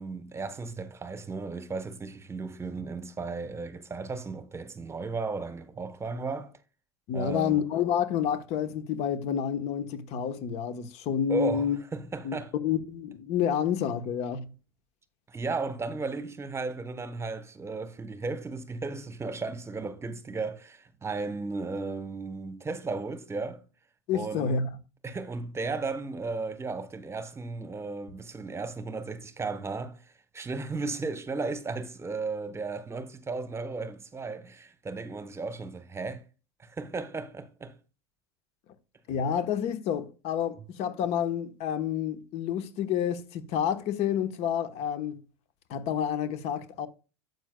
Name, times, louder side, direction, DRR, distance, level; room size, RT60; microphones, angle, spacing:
voice 1, 0.0-6.5 7.1-7.6 11.3-12.5 15.3-23.6 24.1-24.5 25.0-36.2 36.6-37.7, right 3 dB, 20° right, 1.1 m, -35 dB
voice 2, 7.1-11.8 12.2-14.5 24.1-24.7 39.1-45.2 45.7-46.9, left 8 dB, 50° left, 1.2 m, -29 dB
12.0 x 8.0 x 2.3 m
hypercardioid pair, 90°, 14 cm